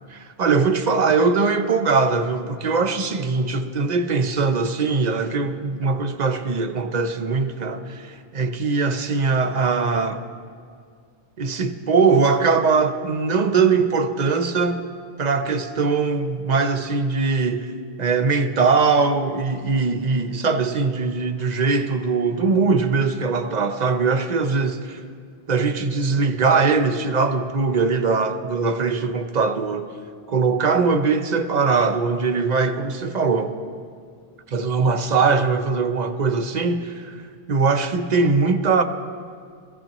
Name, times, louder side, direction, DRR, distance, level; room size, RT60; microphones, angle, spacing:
voice 1, 0.1-10.2 11.4-14.8 15.2-17.7 18.0-25.0 25.5-30.0 30.3-33.5 34.5-37.2 37.5-38.8, right 4 dB, 45° right, 0.8 m, -21 dB
21.5 x 15.5 x 3.0 m
omnidirectional pair, 1.0 m